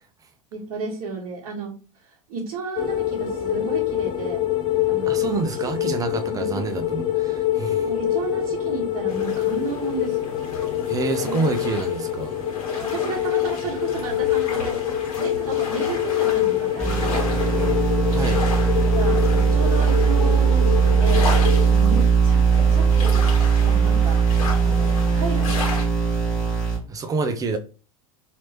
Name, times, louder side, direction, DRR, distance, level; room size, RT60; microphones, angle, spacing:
voice 1, 0.5-4.4 4.9-5.2 5.5-5.9 6.3-6.6 7.8-10.3 11.2-11.5 12.8-17.8 18.9-21.3 21.7-24.2 24.6-25.9, right 4 dB, 45° right, 1.3 m, -33 dB
sound 1, 2.8-21.7, left 12 dB, 25° left, 0.5 m, -25 dB
voice 2, 5.1-7.9 10.9-12.4 18.1-18.4 26.9-27.6, right 3 dB, 20° right, 0.5 m, -27 dB
sound 2, 9.1-25.8, left 3 dB, 65° left, 1.6 m, -34 dB
sound 3, 16.8-26.8, right 6 dB, 5° left, 1.4 m, -19 dB
3.0 x 2.9 x 2.9 m
figure-of-eight pair, 80°, 18 cm